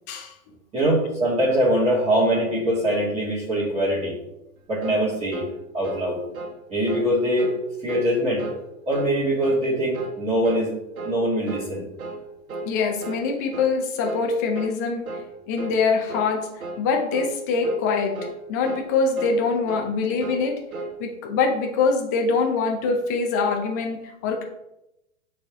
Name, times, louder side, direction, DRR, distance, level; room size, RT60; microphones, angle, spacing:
voice 1, 0.7-4.2 4.7-5.5 5.7-6.2 6.7-7.5 7.8-8.5 8.9-10.7 11.0-11.8, right 1 dB, 15° right, -8 dB, 1.8 m, -22 dB
sound 1, 4.8-5.1 5.3-5.5 5.8-6.1 6.3-6.6 6.9-7.1 7.4-7.6 7.9-8.1 8.4-8.6 8.9-9.1 9.4-9.7 9.9-10.2 10.4-10.7 11.0-11.2 11.5-11.7 12.0-12.2 12.5-12.7 13.0-13.2 13.5-13.8 14.0-14.3 14.5-14.8 15.1-15.3 15.6-15.8 16.1-16.3 16.6-16.8 17.1-17.4 17.6-17.8 18.1-18.4 18.6-18.9 19.2-19.4 19.7-19.9 20.2-21.0, right 3 dB, 75° right, 1.2 m, -34 dB
voice 2, 12.7-15.0 15.5-16.5 16.8-18.2 18.5-20.6 21.0-24.4, left 4 dB, 15° left, 2 dB, 0.3 m, -24 dB
8.2 x 3.5 x 3.4 m, 0.90 s
hypercardioid pair, 120°, 43 cm